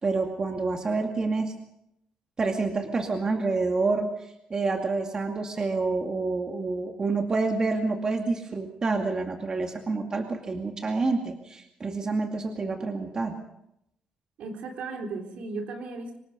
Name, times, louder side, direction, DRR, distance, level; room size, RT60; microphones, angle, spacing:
voice 1, 0.0-1.5 2.4-13.4, right 3 dB, 30° right, 3 dB, 2.3 m, -28 dB
voice 2, 14.4-16.2, right 3 dB, 70° right, 3 dB, 3.9 m, -35 dB
24.5 x 19.5 x 5.3 m, 0.81 s
cardioid pair, 115°, 2 cm